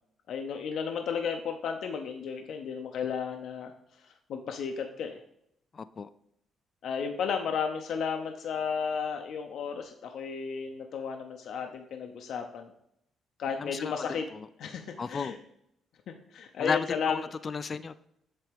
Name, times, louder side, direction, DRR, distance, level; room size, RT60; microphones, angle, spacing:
voice 1, 0.3-5.2 6.8-12.7 13.4-14.3 14.6-15.4 16.1-17.3, left 6 dB, 70° left, 4 dB, 0.7 m, -34 dB
voice 2, 5.7-6.1 13.6-13.9 15.0-15.3 16.6-18.0, left 5 dB, 40° left, 13 dB, 0.3 m, -33 dB
7.5 x 3.4 x 5.0 m, 0.76 s
cardioid pair, 90°, 0 cm